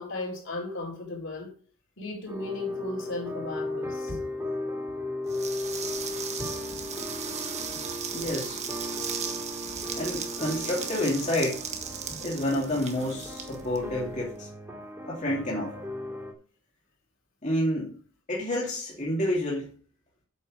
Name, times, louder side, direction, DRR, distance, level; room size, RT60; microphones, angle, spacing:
voice 1, 0.0-1.5 2.0-4.2, left 2 dB, 60° left, 4.4 m, -35 dB
sound 1, 2.3-16.3, left 1 dB, 10° right, 2.6 m, -36 dB
sound 2, 5.3-14.3, right 6 dB, 30° right, 1.5 m, -37 dB
voice 2, 8.1-8.6 9.9-11.7 12.2-14.5 15.1-15.7 17.4-18.0 18.3-19.7, left 1 dB, 35° left, 2.7 m, -29 dB
8.2 x 7.7 x 6.6 m
head